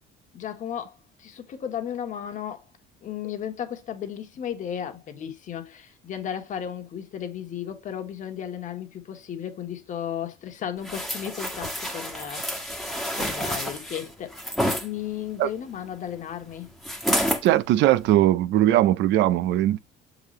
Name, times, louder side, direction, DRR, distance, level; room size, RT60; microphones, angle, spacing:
voice 1, 0.3-2.6 3.0-14.4 14.8-16.7, left 9 dB, 40° left, 1.5 m, -34 dB
sound 1, 10.8-14.9 16.8-17.5 18.0-18.1, equal, ahead, 1.4 m, -28 dB
voice 2, 17.4-19.8, right 14 dB, 60° right, 0.7 m, -20 dB
7.2 x 4.0 x 3.2 m
cardioid pair, 155°, 20 cm